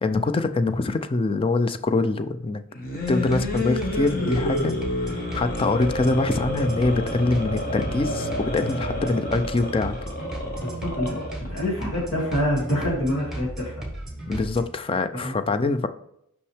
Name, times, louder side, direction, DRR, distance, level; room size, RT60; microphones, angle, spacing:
voice 1, 0.0-2.6 3.1-4.8 5.3-10.0 14.3-15.9, left 2 dB, 25° left, 10 dB, 0.3 m, -24 dB
sound 1, 2.7-11.5, left 1 dB, 40° left, 1.3 m, -29 dB
sound 2, 3.0-14.6, right 1 dB, ahead, 1.4 m, -35 dB
voice 2, 10.6-11.2 11.5-13.9 15.1-15.3, equal, 85° left, -4 dB, 2.3 m, -26 dB
5.6 x 5.4 x 3.4 m, 0.77 s
head